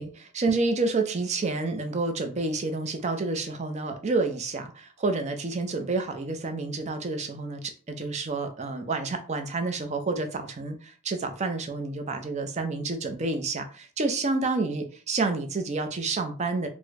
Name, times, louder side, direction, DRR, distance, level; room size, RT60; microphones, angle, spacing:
voice 1, 0.0-16.7, right 3 dB, 35° right, 6 dB, 0.5 m, -29 dB
3.5 x 2.1 x 3.2 m, 0.39 s
head